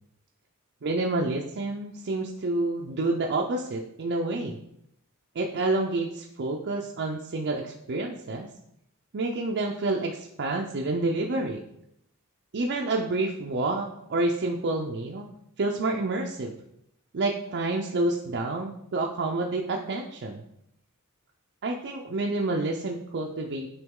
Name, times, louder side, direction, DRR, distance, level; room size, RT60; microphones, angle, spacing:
voice 1, 0.8-4.6 5.4-8.5 9.1-11.6 12.5-15.3 15.6-16.6 17.1-20.4 21.6-23.7, right 2 dB, 50° right, 1 dB, 0.5 m, -28 dB
8.9 x 3.1 x 3.6 m, 0.77 s
head